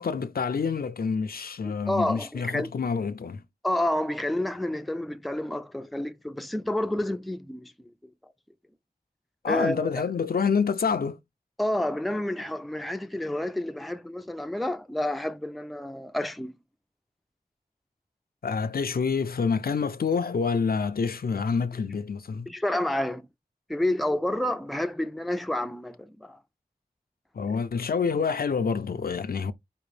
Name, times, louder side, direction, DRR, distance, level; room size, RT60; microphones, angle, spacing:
voice 1, 0.0-3.4 9.4-11.2 18.4-22.5 27.3-29.5, left 5 dB, 75° left, 0.4 m, -27 dB
voice 2, 1.6-2.7 3.6-7.7 9.5-10.0 11.6-16.5 22.5-23.2 23.7-26.4, left 1 dB, ahead, 0.4 m, -29 dB
5.0 x 2.6 x 3.2 m
wide cardioid pair, 60°, 16 cm